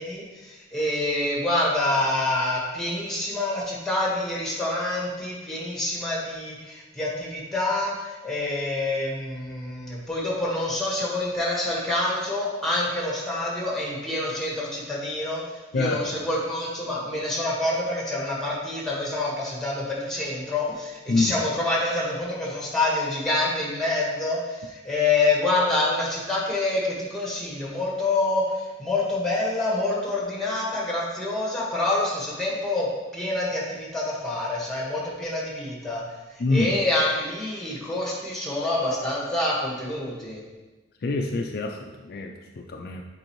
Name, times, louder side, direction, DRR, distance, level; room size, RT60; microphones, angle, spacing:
voice 1, 0.0-15.4 15.7-32.9 33.1-36.0 36.5-40.4, left 2 dB, ahead, -4 dB, 1.5 m, -27 dB
voice 2, 36.4-36.7 41.0-43.0, left 3 dB, 55° left, 3 dB, 0.4 m, -26 dB
7.8 x 4.6 x 3.1 m, 1.2 s
head